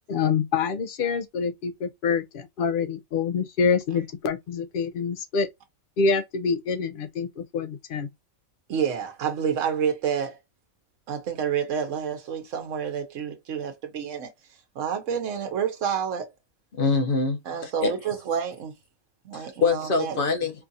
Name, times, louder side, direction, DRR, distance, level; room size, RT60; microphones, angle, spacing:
voice 1, 0.1-5.5 6.0-8.1, left 5 dB, 65° left, 0.5 m, -26 dB
voice 2, 8.7-10.4 11.1-14.3 14.7-16.3 17.5-18.7 19.2-20.2, right 7 dB, 65° right, 1.2 m, -29 dB
voice 3, 16.7-17.9 19.3-20.5, left 4 dB, 45° left, 0.9 m, -25 dB
4.6 x 2.4 x 2.7 m
omnidirectional pair, 1.5 m